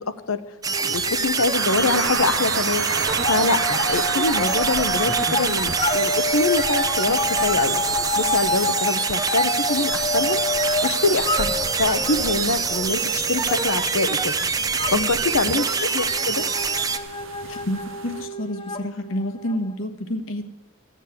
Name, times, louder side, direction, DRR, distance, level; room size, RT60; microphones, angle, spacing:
sound 1, 0.6-17.0, right 5 dB, 15° right, 0.6 m, -25 dB
sound 2, 0.7-2.3 2.6-19.7, left 2 dB, 25° left, 1.0 m, -29 dB
voice 1, 0.9-2.9 3.3-7.8 8.2-10.4 10.8-11.5 11.8-14.3 14.9-16.4, left 3 dB, 90° left, 11 dB, 0.9 m, -24 dB
sound 3, 1.5-18.3, right 5 dB, 65° right, 0.7 m, -34 dB
voice 2, 17.4-20.4, left 1 dB, 70° left, 5 dB, 1.3 m, -29 dB
15.0 x 7.3 x 8.1 m, 1.2 s
head